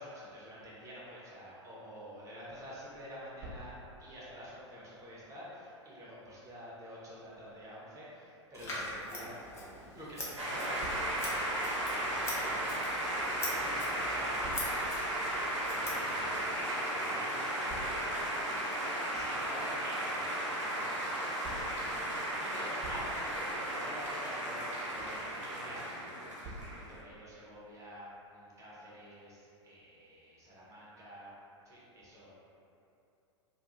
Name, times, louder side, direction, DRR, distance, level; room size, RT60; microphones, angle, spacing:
voice 1, 0.0-3.7 4.0-9.4 9.9-11.4 11.9-12.7 13.3-31.3 31.6-32.3, equal, 20° right, -7 dB, 0.7 m, -48 dB
Scissors, 8.5-16.6, left 1 dB, 15° left, 0.6 m, -44 dB
sound 1, 10.4-27.0, right 1 dB, 85° right, 0.6 m, -35 dB
2.2 x 2.2 x 2.9 m, 2.8 s
figure-of-eight pair, 90°, 16 cm